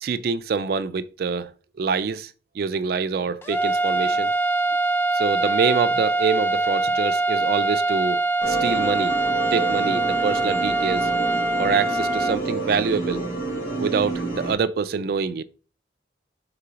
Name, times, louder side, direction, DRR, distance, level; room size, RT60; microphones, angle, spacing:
voice 1, 0.0-1.5 1.8-2.3 2.6-4.3 5.1-8.2 8.5-9.2 9.5-11.1 11.6-13.2 13.8-15.4, right 5 dB, 55° right, 0.3 m, -25 dB
sound 1, 3.4-12.4, right 2 dB, 15° left, 0.5 m, -23 dB
sound 2, 8.4-14.5, right 2 dB, 75° left, 2.7 m, -29 dB
4.9 x 3.8 x 5.5 m
head